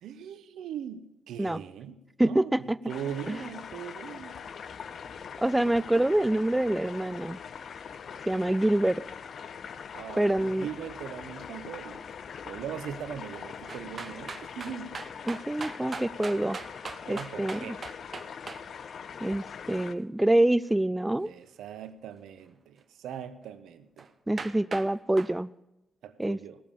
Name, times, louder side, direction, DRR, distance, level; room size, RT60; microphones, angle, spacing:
voice 1, 0.0-4.3 9.9-12.0 12.4-15.0 17.1-17.8 21.2-24.1 26.0-26.6, right 8 dB, 80° right, 12 dB, 0.8 m, -40 dB
voice 2, 2.2-2.8 3.3-3.4 5.4-7.4 8.3-9.0 10.2-10.7 15.3-16.6 17.1-17.7 19.2-21.3 24.3-25.5 26.2-26.4, right 1 dB, 15° right, 18 dB, 0.4 m, -26 dB
sound 1, 2.9-19.9, left 7 dB, 65° left, 0.6 m, -42 dB
sound 2, 13.7-18.6 24.0-24.1 24.4-24.9 25.2-25.3, right 4 dB, 45° right, 1.0 m, -39 dB
17.0 x 7.3 x 6.9 m, 0.93 s
hypercardioid pair, 45°, 0 cm